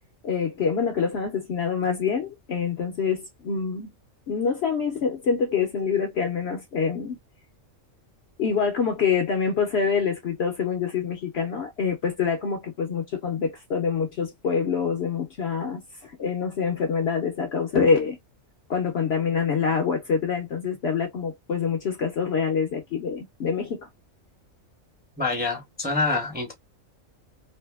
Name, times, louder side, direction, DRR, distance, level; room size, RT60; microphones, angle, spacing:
voice 1, 0.2-3.9 4.3-7.2 8.4-18.2 18.7-23.9, left 6 dB, 60° left, 0.7 m, -26 dB
voice 2, 25.2-26.5, left 3 dB, 10° right, 0.7 m, -26 dB
2.7 x 2.5 x 2.2 m
omnidirectional pair, 1.4 m